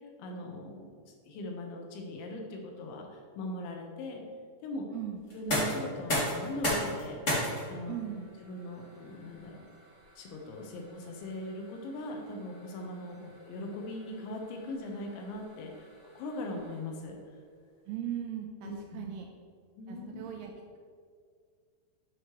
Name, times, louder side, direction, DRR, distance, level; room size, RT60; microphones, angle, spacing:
voice 1, 0.2-1.0 1.3-4.2 4.6-4.8 5.3-8.0 8.4-9.7 10.2-17.2 18.6-19.1 19.8-20.2, left 1 dB, 85° left, 2 dB, 3.5 m, -40 dB
sound 1, 5.2-17.0, equal, 35° left, 1.2 m, -38 dB
voice 2, 7.9-8.3 13.2-13.3 17.9-19.3 19.9-20.5, right 10 dB, 85° right, 2 dB, 2.4 m, -38 dB
11.5 x 6.3 x 3.1 m, 2.1 s
omnidirectional pair, 5.2 m